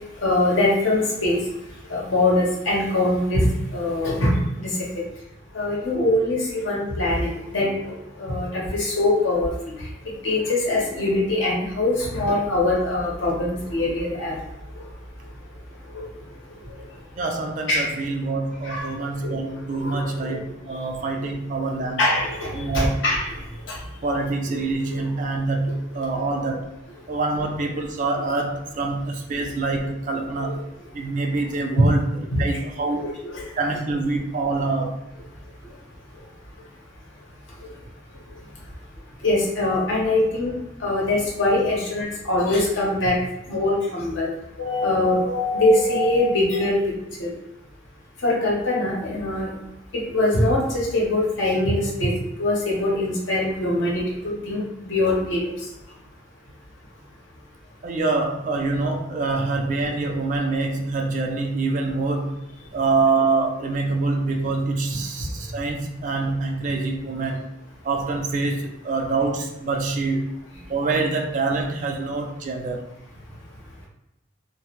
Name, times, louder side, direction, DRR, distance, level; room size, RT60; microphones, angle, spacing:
voice 1, 0.2-1.4 1.9-4.7 5.5-7.9 8.2-9.5 10.2-14.3 15.9-16.1 17.7-17.8 18.6-18.9 19.2-19.4 19.7-20.4 21.2-21.4 21.8-23.2 23.7-23.8 24.0-24.6 24.9-25.0 30.4-30.6 31.8-31.9 32.3-32.5 32.9-33.5 39.2-43.2 43.5-44.3 44.6-46.8 47.2-47.3 48.2-49.5 49.9-52.1 52.4-54.6 54.9-55.5, left 1 dB, 80° left, -4 dB, 0.9 m, -23 dB
voice 2, 17.2-22.0 22.5-23.0 24.0-26.7 27.1-30.6 30.9-33.1 33.6-35.0 57.8-62.4 62.7-67.4 67.8-70.3 70.7-72.9, right 3 dB, 40° right, 3 dB, 0.3 m, -25 dB
2.2 x 2.2 x 2.9 m, 0.94 s
head